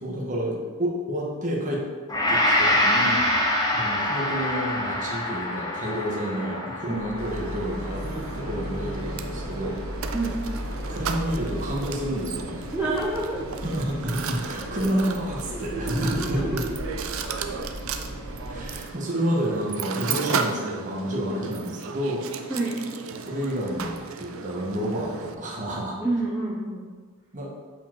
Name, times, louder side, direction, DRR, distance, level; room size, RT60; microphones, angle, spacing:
voice 1, 0.0-1.8 2.3-3.2 3.7-9.8 10.9-12.7 13.6-16.6 18.5-22.2 23.2-26.0 27.3-27.5, equal, 35° right, -3 dB, 1.5 m, -29 dB
Gong, 2.1-10.4 10.9-11.0, left 1 dB, 15° left, 1.1 m, -26 dB
sound 1, 6.9-18.7, equal, 65° left, 2.5 m, -36 dB
Mechanisms, 7.2-25.3, right 6 dB, 70° right, 0.6 m, -35 dB
voice 2, 12.7-13.6 14.6-14.9 15.5-16.7 17.0-17.1 17.5-17.6 18.0-18.1 22.5-22.8 26.0-26.9, right 2 dB, 5° right, -6 dB, 0.8 m, -29 dB
8.4 x 5.0 x 4.6 m, 1.5 s
head